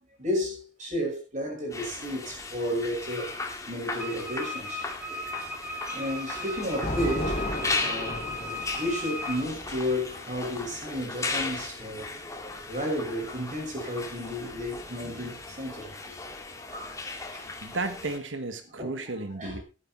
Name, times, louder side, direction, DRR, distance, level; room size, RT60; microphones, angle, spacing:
voice 1, 0.2-3.3 3.7-4.8 5.9-8.2 8.8-12.1 12.7-16.1 16.7-17.5 18.8-19.0 19.4-19.6, equal, 40° right, 6.0 m, -32 dB
sound 1, 1.7-18.2, left 3 dB, 15° left, 2.0 m, -37 dB
Wind instrument woodwind instrument, 4.0-9.5, left 1 dB, 5° right, 1.8 m, -37 dB
Thunder, 5.6-12.8 13.8-15.6, left 1 dB, 30° left, 3.1 m, -37 dB
voice 2, 17.6-19.6, right 2 dB, 85° right, 1.4 m, -33 dB
12.5 x 9.8 x 4.4 m
head